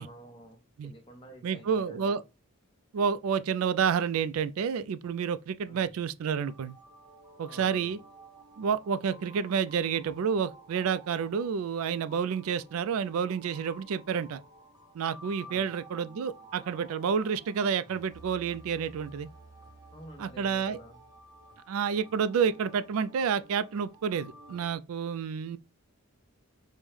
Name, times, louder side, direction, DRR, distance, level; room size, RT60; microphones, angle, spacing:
voice 1, 0.0-2.3 5.7-6.0 7.4-8.0 15.4-15.7 19.9-21.0, right 1 dB, 25° left, 0.8 m, -50 dB
voice 2, 1.4-2.2 2.9-6.8 7.4-8.0 8.6-14.4 14.9-19.3 20.2-20.8 21.7-25.6, right 6 dB, 75° right, 0.3 m, -29 dB
sound 1, 6.5-24.8, right 1 dB, 15° right, 0.6 m, -53 dB
5.1 x 2.2 x 3.1 m
head